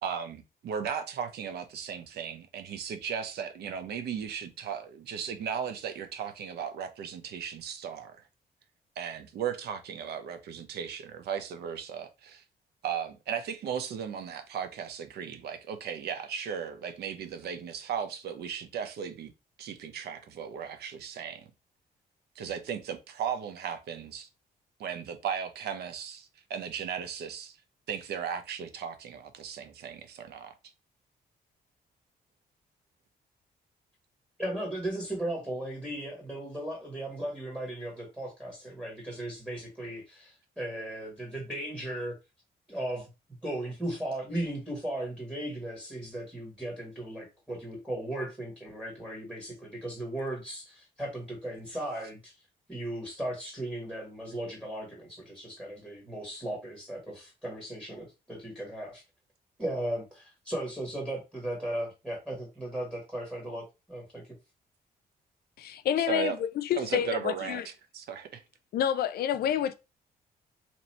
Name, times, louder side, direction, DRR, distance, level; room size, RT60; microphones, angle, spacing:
voice 1, 0.0-8.2 9.0-12.4 12.8-19.3 19.6-21.5 22.4-24.3 24.8-27.6 27.9-30.5 66.1-66.4 66.7-68.4, right 8 dB, 85° right, 0.7 m, -36 dB
voice 2, 34.4-42.2 42.7-43.1 43.4-52.3 52.7-59.0 59.6-64.3, right 1 dB, 5° right, 1.5 m, -36 dB
voice 3, 65.6-67.7 68.7-69.7, left 10 dB, 75° left, 0.4 m, -28 dB
3.0 x 2.6 x 4.1 m
cardioid pair, 120°, 16 cm